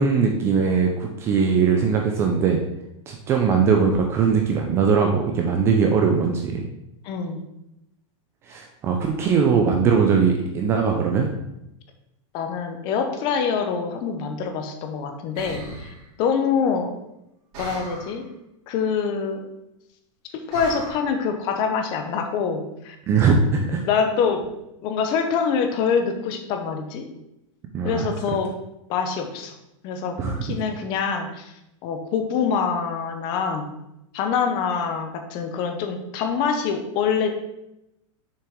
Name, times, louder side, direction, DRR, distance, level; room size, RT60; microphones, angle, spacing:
voice 1, 0.0-2.6 3.1-6.6 8.5-11.3 23.1-23.8 27.7-28.1 30.2-30.6, right 5 dB, 15° right, 2 dB, 0.4 m, -20 dB
voice 2, 7.0-7.4 12.3-15.6 16.2-16.9 17.6-18.3 18.7-19.4 20.3-23.0 23.9-24.5 24.8-27.1 27.8-28.5 28.9-29.5 29.8-31.5 31.8-33.7 34.1-37.3, left 6 dB, 25° left, 6 dB, 0.7 m, -25 dB
sound 1, 15.3-16.0 17.5-18.2 20.5-20.9, right 1 dB, 30° right, 2.7 m, -36 dB
6.8 x 5.8 x 3.6 m, 0.86 s
supercardioid pair, 170°, 17 cm